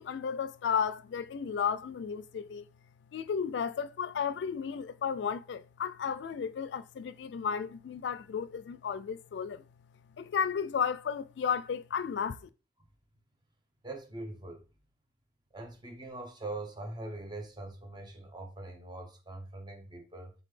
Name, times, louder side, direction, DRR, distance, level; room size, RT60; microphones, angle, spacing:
voice 1, 0.0-2.7 3.1-9.6 10.2-12.5, left 7 dB, 80° left, 0.3 m, -33 dB
voice 2, 13.8-14.6 15.5-20.3, right 2 dB, 25° right, 0.9 m, -42 dB
4.1 x 3.4 x 3.2 m
head